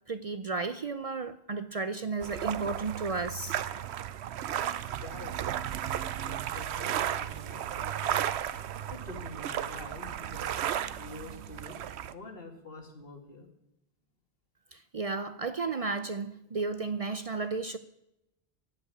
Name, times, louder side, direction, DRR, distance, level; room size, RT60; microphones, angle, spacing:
voice 1, 0.1-3.6 14.7-17.8, right 4 dB, 45° right, 0.5 m, -33 dB
sound 1, 2.2-12.1, right 10 dB, 90° right, 0.9 m, -34 dB
voice 2, 4.9-5.5 6.0-8.2 8.9-10.5 11.0-11.8 12.1-13.5, left 2 dB, 60° left, 2.3 m, -46 dB
15.5 x 5.7 x 9.7 m
omnidirectional pair, 1.1 m